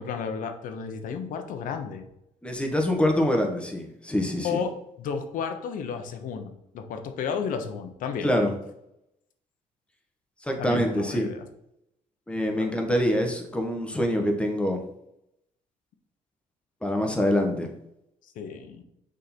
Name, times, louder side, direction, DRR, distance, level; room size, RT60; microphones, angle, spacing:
voice 1, 0.0-2.0 4.4-4.7 5.0-8.4 10.6-11.5 12.6-12.7 18.3-18.8, left 6 dB, 70° left, 6 dB, 0.9 m, -32 dB
voice 2, 2.4-4.6 8.2-8.5 10.4-11.3 12.3-14.8 16.8-17.7, left 1 dB, 10° left, 2 dB, 1.3 m, -25 dB
6.5 x 3.8 x 4.4 m, 0.81 s
cardioid pair, 85°, 14 cm